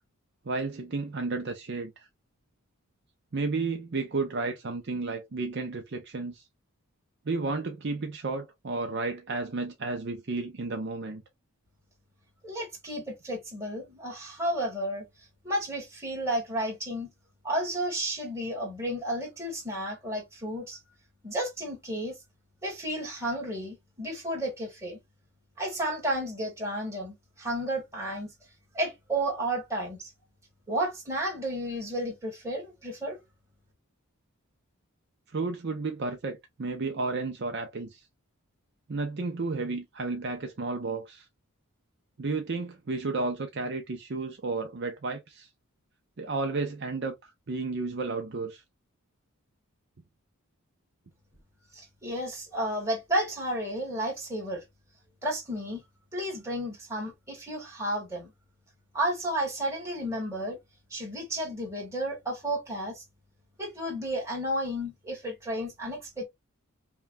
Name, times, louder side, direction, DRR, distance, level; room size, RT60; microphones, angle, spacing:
voice 1, 0.5-2.1 3.3-6.4 7.3-11.2 35.3-38.0 38.9-41.3 42.2-45.5 46.2-48.6, right 3 dB, 50° right, 0.5 m, -32 dB
voice 2, 12.4-15.1 15.4-17.1 17.4-20.8 21.2-22.2 22.6-25.0 25.6-28.3 28.7-30.1 30.7-33.2 51.7-54.6 55.2-55.8 56.1-58.3 58.9-60.6 60.9-63.0 63.6-66.2, right 1 dB, 15° right, 1.8 m, -32 dB
5.5 x 2.3 x 2.6 m
head